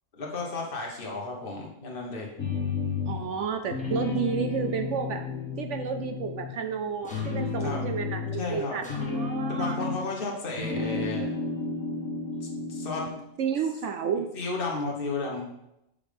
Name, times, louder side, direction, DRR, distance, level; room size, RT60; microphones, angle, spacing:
voice 1, 0.2-2.3 7.6-7.8 8.4-8.8 9.5-11.3 12.4-13.1 14.3-15.5, left 3 dB, 40° left, -1 dB, 1.6 m, -33 dB
sound 1, 2.4-3.4 3.7-6.7 7.1-10.2 10.5-13.2, left 4 dB, 65° left, 1.8 m, -32 dB
voice 2, 3.1-5.2 5.6-9.8 13.4-14.3, right 6 dB, 65° right, 7 dB, 0.8 m, -31 dB
sound 2, 7.0-7.6 8.8-9.4, equal, 5° left, 1.2 m, -46 dB
7.1 x 5.2 x 5.2 m, 0.85 s
omnidirectional pair, 1.5 m